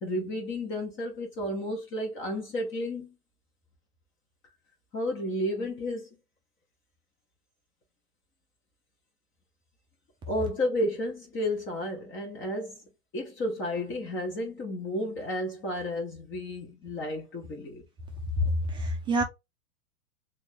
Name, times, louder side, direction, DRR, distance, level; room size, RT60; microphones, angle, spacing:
voice 1, 0.0-3.1 4.9-6.1 10.3-12.8 13.1-17.8, left 1 dB, 25° left, 1.0 m, -32 dB
voice 2, 18.4-19.2, equal, 10° right, 0.4 m, -27 dB
3.1 x 2.6 x 3.0 m
hypercardioid pair, 105°, 48 cm